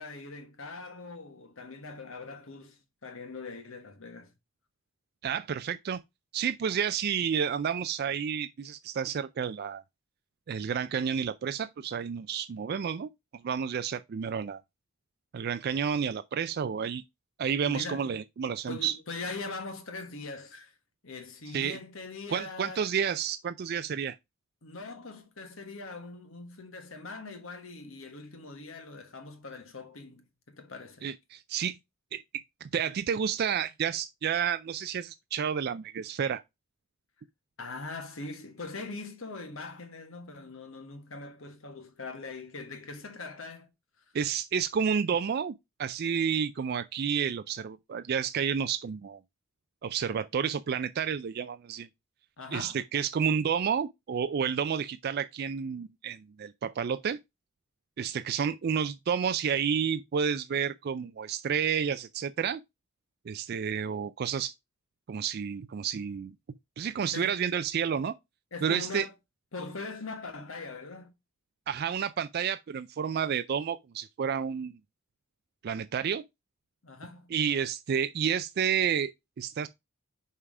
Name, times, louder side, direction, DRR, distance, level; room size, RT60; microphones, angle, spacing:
voice 1, 0.0-4.3 17.6-18.0 18.7-20.7 21.0-22.9 24.6-31.1 37.6-43.7 52.4-52.8 67.1-67.4 68.5-69.1 69.5-71.1 76.8-77.3, left 3 dB, 75° left, 1.5 m, -41 dB
voice 2, 5.2-6.0 6.3-9.8 10.5-13.1 13.4-14.6 15.3-17.0 17.4-19.0 21.5-21.8 22.3-24.2 31.0-31.8 32.1-36.4 44.1-45.5 45.8-49.2 49.8-51.9 52.5-57.2 58.0-62.6 63.3-64.5 65.1-66.3 66.8-68.1 68.6-69.1 71.7-74.8 75.6-76.2 77.3-79.7, right 7 dB, 50° right, 0.4 m, -30 dB
5.5 x 4.8 x 4.8 m
head